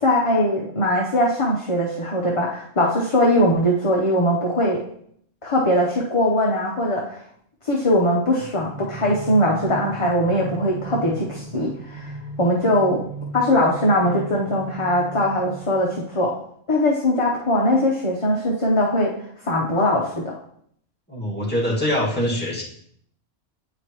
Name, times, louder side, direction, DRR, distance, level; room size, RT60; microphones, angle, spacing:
voice 1, 0.0-4.8 5.4-7.2 7.6-13.0 13.3-16.4 16.7-19.1 19.4-20.3, left 1 dB, 30° left, -2 dB, 0.7 m, -21 dB
sound 1, 8.4-16.3, right 3 dB, 20° right, 0.6 m, -37 dB
voice 2, 21.1-22.6, left 1 dB, 10° left, -6 dB, 1.7 m, -23 dB
8.8 x 5.0 x 2.9 m, 0.67 s
omnidirectional pair, 1.2 m